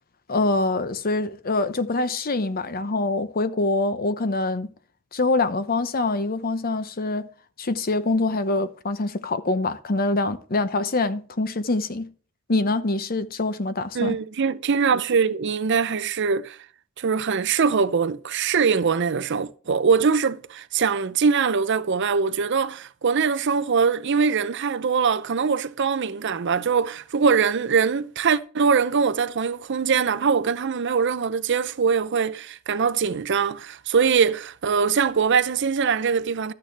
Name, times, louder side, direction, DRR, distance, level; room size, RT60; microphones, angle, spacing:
voice 1, 0.3-4.7 5.1-7.3 7.6-12.1 12.5-14.2, left 2 dB, 45° left, 0.8 m, -24 dB
voice 2, 13.9-16.6 17.0-36.5, right 5 dB, 55° right, 0.5 m, -22 dB
12.5 x 8.6 x 3.4 m
head